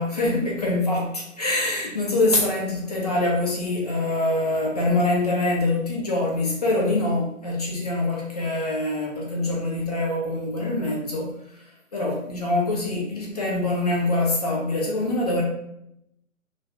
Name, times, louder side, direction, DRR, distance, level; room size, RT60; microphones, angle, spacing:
voice 1, 0.0-15.4, left 2 dB, 30° left, -2 dB, 0.5 m, -24 dB
3.0 x 2.1 x 2.7 m, 0.78 s
figure-of-eight pair, 140°, 41 cm